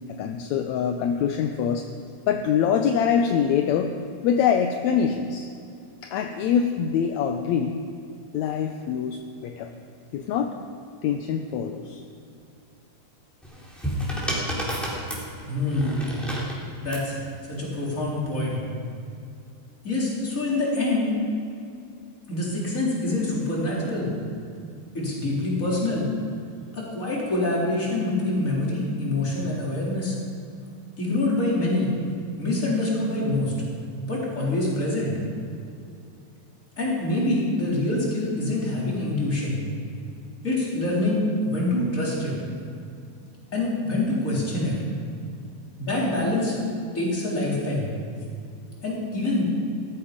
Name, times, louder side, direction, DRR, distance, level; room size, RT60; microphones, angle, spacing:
voice 1, 0.1-1.9 2.3-3.9 4.2-5.5 6.0-7.8 8.3-9.7 10.1-10.5 11.0-12.0, left 7 dB, 75° left, 5 dB, 1.9 m, -24 dB
sound 1, 13.4-17.1 18.1-18.5, equal, ahead, 3.3 m, -31 dB
voice 2, 15.5-16.1 16.6-17.2 17.5-18.6 19.8-21.1 22.3-24.1 24.9-26.1 26.7-30.2 31.0-31.9 32.3-33.5 34.1-35.1 36.8-39.6 40.4-42.3 43.5-44.8 45.8-46.5 46.9-47.9 48.8-49.4, left 2 dB, 25° left, -5 dB, 3.9 m, -25 dB
17.5 x 13.0 x 5.1 m, 2.5 s
omnidirectional pair, 3.5 m